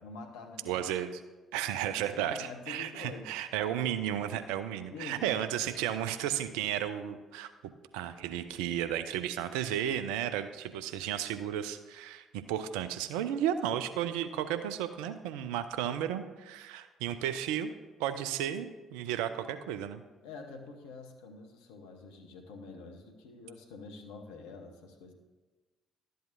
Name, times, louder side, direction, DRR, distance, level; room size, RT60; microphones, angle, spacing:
voice 1, 0.0-0.8 1.7-3.3 4.8-5.5 20.2-25.1, left 3 dB, 70° left, 3 dB, 1.0 m, -46 dB
voice 2, 0.7-1.2 1.5-7.5 7.9-17.7 18.0-20.0, right 10 dB, 65° right, 10 dB, 0.4 m, -33 dB
12.0 x 7.8 x 2.6 m, 1.2 s
figure-of-eight pair, 50°, 0 cm